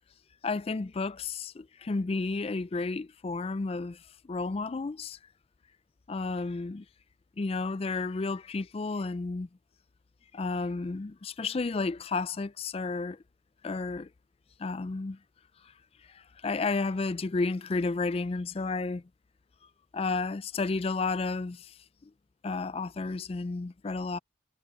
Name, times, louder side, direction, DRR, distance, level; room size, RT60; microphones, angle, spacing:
voice 1, 0.4-5.2 6.1-6.8 7.4-9.5 10.3-13.2 13.6-14.1 14.6-15.2 16.1-19.0 19.9-21.7 22.4-24.2, left 3 dB, 30° left, 0.3 m, -32 dB
head